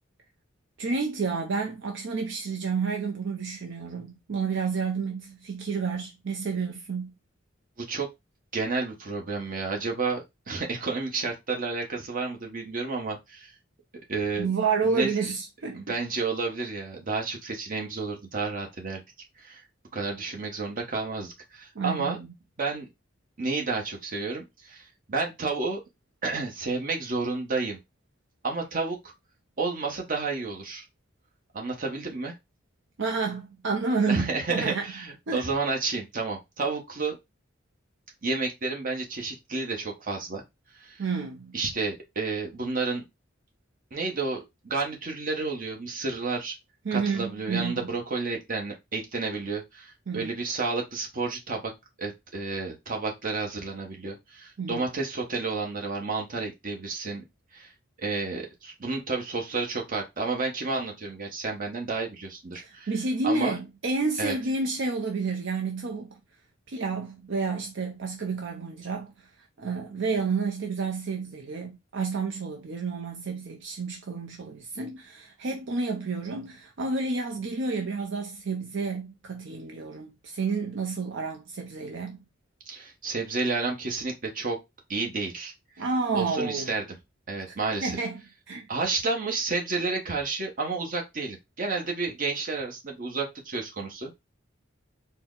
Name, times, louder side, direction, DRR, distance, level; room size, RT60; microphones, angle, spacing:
voice 1, 0.8-7.1 14.4-16.0 21.8-22.3 33.0-34.8 35.3-35.5 41.0-41.6 46.9-47.8 50.1-50.3 54.6-54.8 62.6-66.1 66.7-69.1 69.6-82.2 85.8-86.7 87.5-87.6 87.8-88.2 88.5-88.7, right 4 dB, 65° right, 0.6 m, -30 dB
voice 2, 7.8-8.1 8.5-13.5 14.1-14.5 14.8-15.1 15.7-19.0 19.4-19.6 19.9-22.2 22.6-22.9 23.4-25.8 26.2-27.8 28.4-29.1 29.6-30.8 31.5-32.3 34.1-37.2 38.2-40.4 40.8-41.0 41.5-43.0 43.9-46.6 46.9-51.7 52.0-57.2 57.5-57.7 58.0-62.9 63.2-63.6 64.2-64.4 82.7-84.6 84.9-85.5 86.1-86.8 87.3-88.0 88.7-94.1, right 3 dB, 45° right, 1.1 m, -31 dB
4.3 x 2.2 x 3.7 m
head